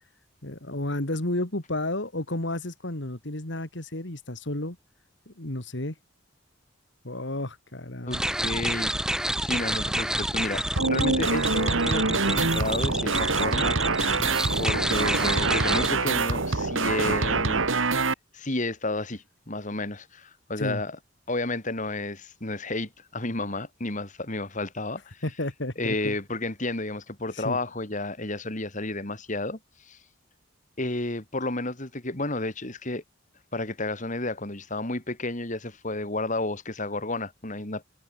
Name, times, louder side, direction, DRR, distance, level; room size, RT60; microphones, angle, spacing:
voice 1, 0.4-4.8 5.3-5.9 7.0-8.2 20.6-20.8 25.2-26.2 27.3-27.6, left 1 dB, 65° left, 2.7 m, -32 dB
voice 2, 8.0-13.8 14.0-14.2 14.6-17.6 18.3-21.0 21.3-25.2 25.8-30.0 30.8-33.0 33.5-37.8, left 2 dB, 40° left, 3.1 m, -31 dB
sound 1, 8.1-15.9, right 1 dB, 5° right, 2.9 m, -29 dB
sound 2, 10.8-18.1, right 3 dB, 80° right, 2.4 m, -25 dB
head